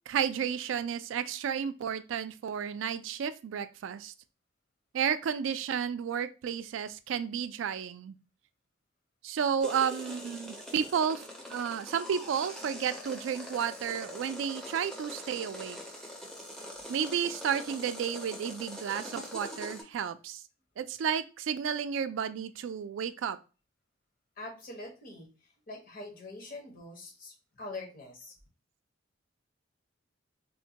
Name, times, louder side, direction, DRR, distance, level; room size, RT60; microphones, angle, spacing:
voice 1, 0.1-4.1 4.9-8.2 9.2-11.2 11.5-15.8 16.9-20.4 20.8-23.4, right 7 dB, 70° right, 12 dB, 0.3 m, -32 dB
sound 1, 9.6-19.8, left 1 dB, 5° left, 0.5 m, -43 dB
voice 2, 24.4-25.3 25.7-28.3, left 2 dB, 45° left, 1 dB, 0.9 m, -44 dB
3.7 x 2.1 x 2.7 m, 0.32 s
head